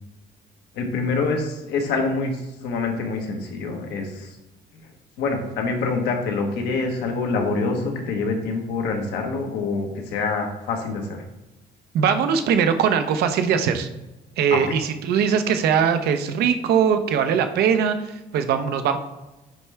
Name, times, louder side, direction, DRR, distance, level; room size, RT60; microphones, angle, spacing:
voice 1, 0.7-4.4 5.2-11.2 14.5-14.6, left 3 dB, 80° left, 2 dB, 1.2 m, -26 dB
voice 2, 11.9-13.9 14.4-19.0, right 7 dB, 70° right, 9 dB, 0.7 m, -21 dB
9.0 x 3.2 x 3.4 m, 1.0 s
cardioid pair, 110°, 17 cm